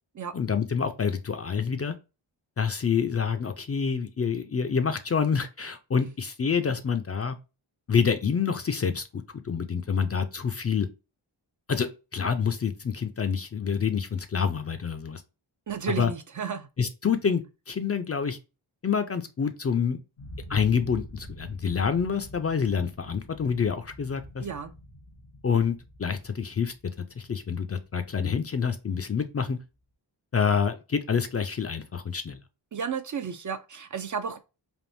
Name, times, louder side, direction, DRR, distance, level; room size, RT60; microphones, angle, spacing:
voice 1, 0.3-1.9 2.6-7.4 7.9-10.9 11.7-15.2 16.0-16.1 16.8-18.4 18.8-20.0 20.5-24.5 25.4-26.7 27.2-29.6 30.3-32.4, left 6 dB, 35° left, 0.4 m, -27 dB
voice 2, 15.7-16.7 24.4-24.7 32.7-34.4, right 6 dB, 40° right, 0.4 m, -32 dB
sound 1, 20.2-29.0, equal, 90° left, 1.1 m, -46 dB
3.5 x 2.5 x 2.6 m
cardioid pair, 45°, 48 cm